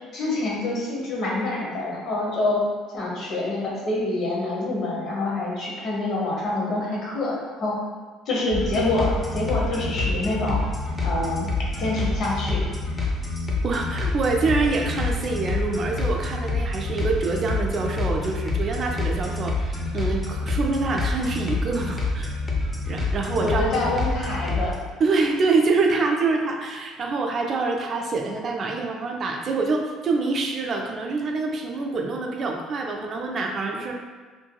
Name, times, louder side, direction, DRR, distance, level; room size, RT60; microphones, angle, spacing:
voice 1, 0.1-2.6 2.9-7.7 8.3-10.6 11.0-11.5 11.8-12.6 23.3-24.8, left 2 dB, 55° left, -4 dB, 0.8 m, -26 dB
sound 1, 8.5-24.7, left 3 dB, 15° left, 0.6 m, -27 dB
voice 2, 13.6-22.3 22.8-23.6 25.0-33.9, right 3 dB, 45° right, 2 dB, 0.4 m, -25 dB
2.6 x 2.6 x 2.2 m, 1.5 s
supercardioid pair, 80°, 0 cm